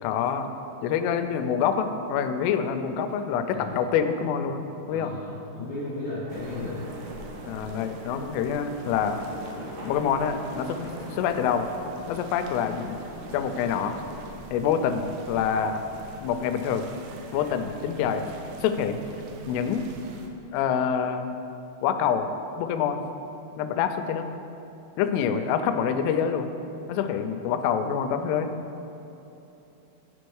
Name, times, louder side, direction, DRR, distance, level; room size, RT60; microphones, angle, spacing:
voice 1, 0.0-0.5 0.8-4.6 4.9-5.1 6.6-6.8 7.5-9.2 9.8-11.7 12.1-13.0 13.3-14.0 14.5-15.8 16.2-16.9 17.3-18.2 18.6-19.0 19.5-19.9 20.5-21.2 21.8-22.3 22.6-23.0 23.6-24.3 25.0-26.5 26.9-28.5, left 7 dB, 90° left, 8 dB, 3.1 m, -26 dB
voice 2, 3.5-3.8 4.9-6.8, left 2 dB, 70° left, -12 dB, 1.6 m, -35 dB
sound 1, 6.2-14.2, equal, 70° right, 1.4 m, -42 dB
sound 2, 6.3-20.3, right 3 dB, 90° right, 3.2 m, -44 dB
10.0 x 5.3 x 4.6 m, 3.0 s
omnidirectional pair, 5.6 m